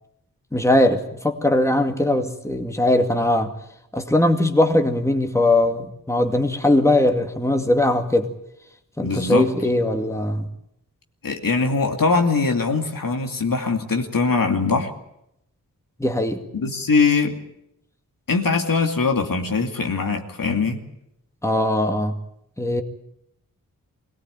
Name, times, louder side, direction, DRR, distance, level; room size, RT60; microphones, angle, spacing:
voice 1, 0.5-3.5 3.9-8.3 9.0-10.5 16.0-16.4 21.4-22.2 22.6-22.8, left 1 dB, 10° left, 5 dB, 2.2 m, -20 dB
voice 2, 9.0-9.5 11.2-14.9 16.5-17.4 18.3-20.8, left 4 dB, 75° left, 4 dB, 2.6 m, -21 dB
21.5 x 18.0 x 9.0 m, 0.80 s
wide cardioid pair, 60°, 34 cm